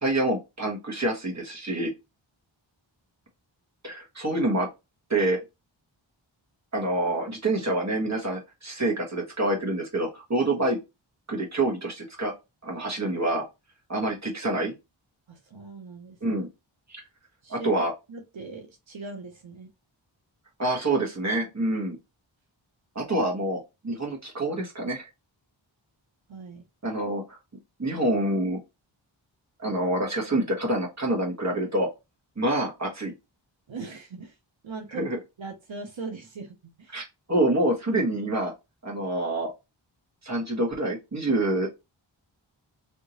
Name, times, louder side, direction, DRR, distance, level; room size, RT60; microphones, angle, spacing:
voice 1, 0.0-1.9 3.8-4.7 5.1-5.4 6.7-10.8 11.3-12.3 12.6-13.4 13.9-14.7 16.2-16.5 16.9-17.0 17.5-17.9 20.6-22.0 22.9-25.1 26.8-27.4 27.8-28.6 29.6-31.9 32.4-33.1 34.9-35.2 36.9-38.5 38.8-39.5 40.2-41.7, right 1 dB, 35° right, -1 dB, 1.4 m, -27 dB
voice 2, 15.3-16.4 17.4-19.7 26.3-26.6 33.7-34.4 34.6-35.0 35.4-37.0, right 4 dB, 75° right, 4 dB, 0.8 m, -40 dB
3.4 x 2.7 x 2.9 m, 0.25 s
wide cardioid pair, 60°, 47 cm